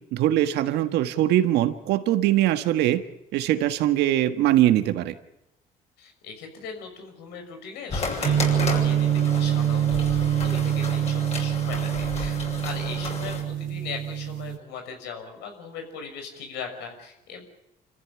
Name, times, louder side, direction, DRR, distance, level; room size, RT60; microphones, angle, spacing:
voice 1, 0.1-3.0 3.3-5.1, right 13 dB, 85° right, 9 dB, 1.6 m, -22 dB
voice 2, 6.0-12.4 12.6-17.4, left 5 dB, 90° left, 5 dB, 6.3 m, -39 dB
sound 1, 7.9-13.4, left 3 dB, 40° left, 7.1 m, -33 dB
sound 2, 8.2-14.6, right 10 dB, 55° right, 2.9 m, -25 dB
27.0 x 15.0 x 9.8 m, 0.91 s
cardioid pair, 110°, 17 cm